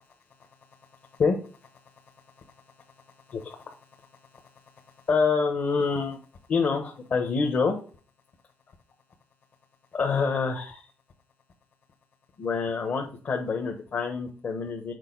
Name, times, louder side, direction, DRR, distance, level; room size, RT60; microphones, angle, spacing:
voice 1, 3.3-3.7 4.3-4.4 5.1-6.2 6.5-7.8 9.9-10.9 12.4-14.9, left 5 dB, 50° left, 1 dB, 1.1 m, -26 dB
6.6 x 4.3 x 3.9 m, 0.39 s
cardioid pair, 120°, 4 cm